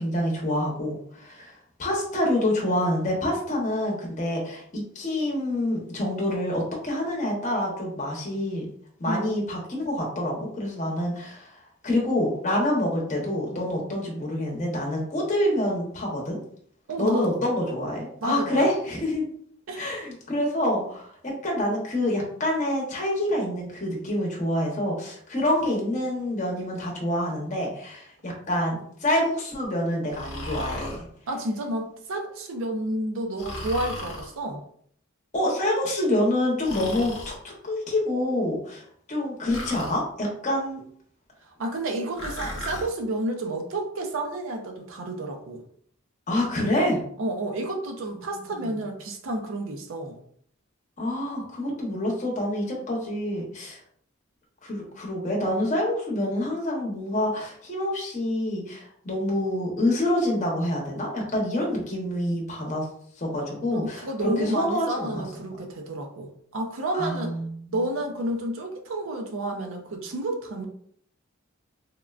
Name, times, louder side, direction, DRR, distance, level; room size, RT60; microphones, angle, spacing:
voice 1, 0.0-1.5 1.8-8.7 9.0-11.5 11.8-16.4 17.0-19.3 19.7-31.0 35.3-40.8 46.3-47.0 48.4-48.7 51.0-53.8 54.6-62.9 63.2-64.0 64.4-65.3 66.9-67.5, left 1 dB, 35° left, -2 dB, 0.8 m, -27 dB
voice 2, 16.9-17.4 18.2-18.6 19.7-19.8 31.3-34.6 41.5-45.6 47.2-50.2 63.7-67.4 67.7-70.7, right 1 dB, 75° right, 4 dB, 0.5 m, -30 dB
Breathing, 30.1-31.0 33.4-34.3 36.6-37.4 39.5-40.0 42.1-42.9, left 1 dB, 80° left, 0.7 m, -35 dB
3.6 x 2.1 x 2.3 m, 0.62 s
head